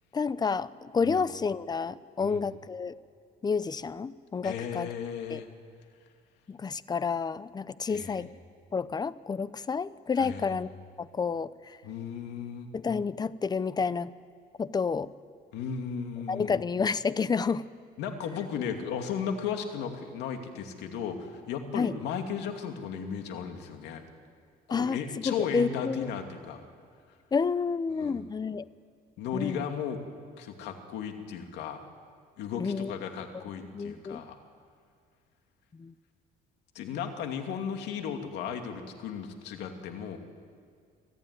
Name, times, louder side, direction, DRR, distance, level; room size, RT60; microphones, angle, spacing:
voice 1, 0.1-2.9 3.4-4.9 5.3-5.4 6.5-8.3 8.7-10.7 11.0-11.8 12.7-14.1 14.6-15.1 16.3-17.6 21.7-21.9 24.7-26.1 27.3-28.6 29.3-29.7 32.6-32.9 33.3-33.4 33.7-34.2 35.7-35.9, left 5 dB, 25° left, 17 dB, 0.7 m, -30 dB
voice 2, 4.4-5.5 7.9-8.2 10.2-10.6 11.8-12.7 15.5-16.5 18.0-24.0 24.7-26.7 28.0-28.2 29.2-30.0 30.4-31.8 32.4-34.4 36.7-40.2, left 7 dB, 85° left, 5 dB, 2.5 m, -35 dB
26.5 x 14.5 x 9.7 m, 2.1 s
cardioid pair, 110°, 17 cm